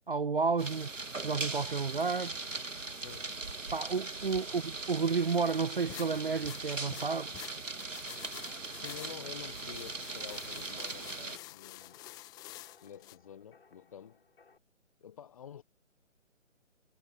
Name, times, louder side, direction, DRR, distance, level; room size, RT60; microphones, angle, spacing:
voice 1, 0.1-0.9 1.2-2.3 3.7-7.3, right 5 dB, 45° right, 0.7 m, -31 dB
sound 1, 0.6-11.4, right 3 dB, 75° right, 2.2 m, -40 dB
sound 2, 5.9-13.2, left 18 dB, 10° left, 2.1 m, -49 dB
sound 3, 7.7-14.6, left 5 dB, 50° left, 6.2 m, -65 dB
voice 2, 8.6-12.0 12.8-14.2 15.0-15.6, left 9 dB, 25° left, 1.6 m, -49 dB
figure-of-eight pair, 145°, 39 cm